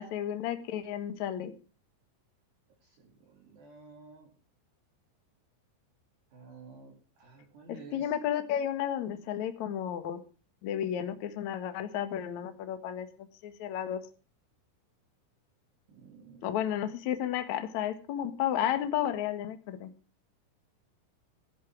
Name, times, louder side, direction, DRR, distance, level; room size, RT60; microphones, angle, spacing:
voice 1, 0.0-1.5 7.9-10.2 10.6-13.1 13.4-14.0 16.4-19.9, left 10 dB, 80° left, 9 dB, 1.6 m, -32 dB
voice 2, 2.8-4.3 6.3-8.1 15.9-16.5, right 3 dB, 55° right, 0 dB, 4.6 m, -52 dB
16.5 x 10.5 x 6.1 m, 0.36 s
omnidirectional pair, 6.0 m